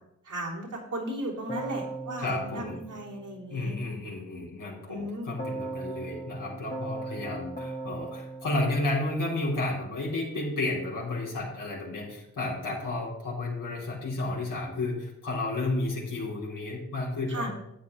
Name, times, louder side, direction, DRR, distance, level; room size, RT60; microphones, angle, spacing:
voice 1, 0.2-3.7 4.9-5.3 17.3-17.5, right 1 dB, 65° right, -3 dB, 3.3 m, -36 dB
Keyboard (musical), 1.5-3.8 5.4-9.7, right 2 dB, 25° left, 1.8 m, -39 dB
voice 2, 2.2-2.8 3.5-17.5, left 2 dB, 70° left, -3 dB, 3.3 m, -32 dB
11.5 x 8.4 x 3.2 m, 0.83 s
supercardioid pair, 45°, 33 cm